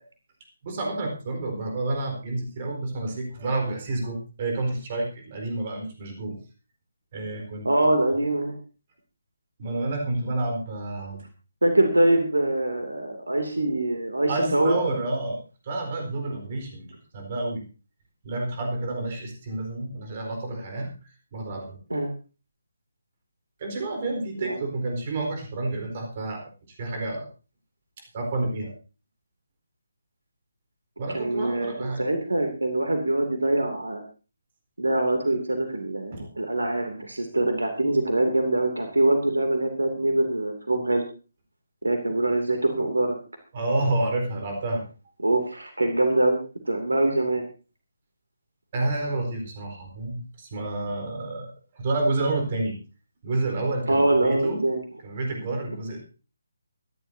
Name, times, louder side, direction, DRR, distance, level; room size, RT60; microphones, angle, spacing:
voice 1, 0.6-6.4 7.1-7.7 9.6-11.2 14.3-15.4 15.6-17.7 18.2-20.9 21.3-21.8 23.6-26.5 26.8-27.3 28.1-28.7 31.0-32.0 36.1-36.2 43.5-44.8 48.7-52.8 53.2-54.6 55.0-56.1, right 2 dB, 35° right, 4 dB, 4.3 m, -29 dB
voice 2, 7.6-8.5 11.6-14.8 16.3-16.4 21.9-22.1 24.4-24.6 31.1-34.0 34.8-41.0 41.8-43.2 45.2-46.4 46.7-47.4 53.9-54.8, right 1 dB, 70° right, 5 dB, 2.8 m, -24 dB
24.0 x 11.0 x 2.8 m, 0.33 s
figure-of-eight pair, 145°, 0 cm